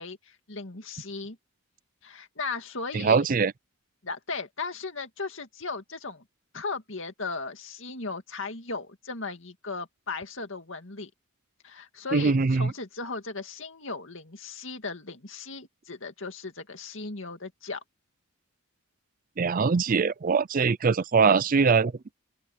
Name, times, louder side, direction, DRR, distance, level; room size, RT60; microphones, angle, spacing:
voice 1, 0.0-1.4 2.0-3.3 4.0-6.2 6.5-11.1 11.6-17.8, left 4 dB, 60° left, 2.3 m, -36 dB
voice 2, 2.9-3.5 12.1-12.7 19.4-21.9, right 5 dB, 40° right, 0.4 m, -22 dB
open air
head